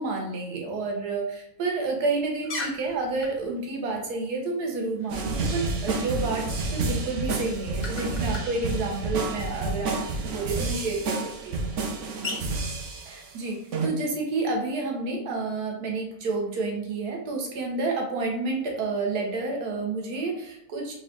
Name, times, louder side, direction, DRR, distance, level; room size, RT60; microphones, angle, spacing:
voice 1, 0.0-10.0 10.3-11.5 13.1-20.9, right 3 dB, 80° right, 0 dB, 1.4 m, -30 dB
sound 1, 2.2-12.8, left 3 dB, 40° left, 0.6 m, -43 dB
sound 2, 5.1-13.3 13.7-13.9, right 3 dB, 65° right, 0.8 m, -30 dB
3.9 x 2.3 x 3.6 m, 0.81 s
omnidirectional pair, 1.6 m